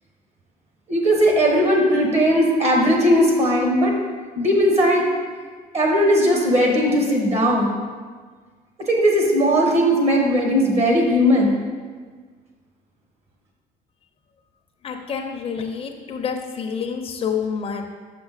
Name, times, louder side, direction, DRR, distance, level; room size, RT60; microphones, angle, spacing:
voice 1, 0.9-3.9 4.3-5.0 5.7-7.8 8.9-11.6, equal, 40° right, 0 dB, 1.4 m, -18 dB
voice 2, 14.8-17.9, left 6 dB, 35° left, 3 dB, 0.7 m, -28 dB
6.0 x 5.9 x 4.1 m, 1.5 s
cardioid pair, 110°, 17 cm